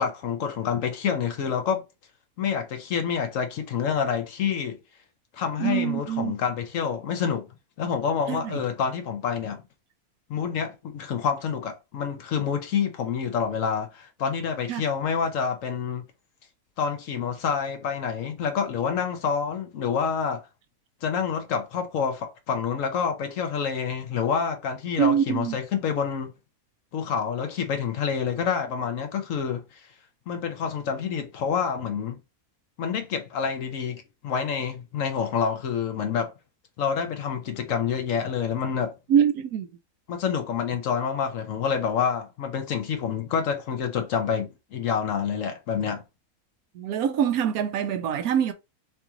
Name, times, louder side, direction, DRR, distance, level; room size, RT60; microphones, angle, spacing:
voice 1, 0.0-1.8 2.4-4.8 5.3-7.5 7.8-9.6 10.3-16.0 16.8-20.4 21.0-26.3 26.9-29.8 30.3-32.2 32.8-36.3 36.8-38.9 40.1-46.0, left 7 dB, 65° left, 1.0 m, -27 dB
voice 2, 5.6-6.4 8.3-8.6 14.7-14.8 25.0-25.6 39.1-39.7 46.7-48.5, right 8 dB, 75° right, 1.0 m, -24 dB
3.0 x 2.9 x 3.6 m
omnidirectional pair, 1.6 m